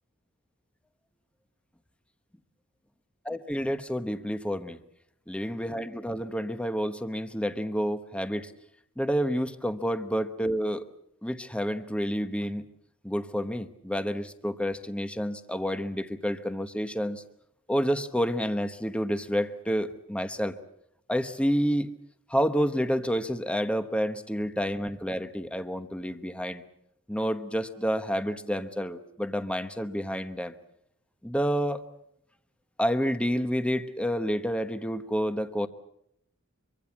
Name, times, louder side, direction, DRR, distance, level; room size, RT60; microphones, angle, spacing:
voice 1, 3.2-4.8 5.3-8.5 9.0-10.9 11.2-12.6 13.0-17.2 17.7-20.6 21.1-21.9 22.3-26.6 27.1-30.5 31.2-31.8 32.8-35.7, equal, 5° left, 10 dB, 1.1 m, -29 dB
24.5 x 24.5 x 7.3 m, 0.73 s
head